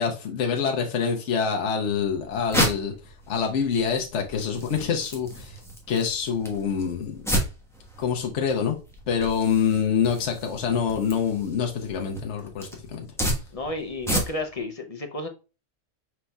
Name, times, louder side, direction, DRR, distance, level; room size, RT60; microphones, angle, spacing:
voice 1, 0.0-2.9 3.3-5.6 5.9-7.2 8.0-8.8 9.1-13.1, left 7 dB, 65° left, 1.1 m, -26 dB
sound 1, 1.9-14.6, equal, ahead, 1.0 m, -32 dB
voice 2, 13.5-15.3, left 2 dB, 40° left, 0.6 m, -32 dB
5.3 x 4.5 x 2.2 m
omnidirectional pair, 1.3 m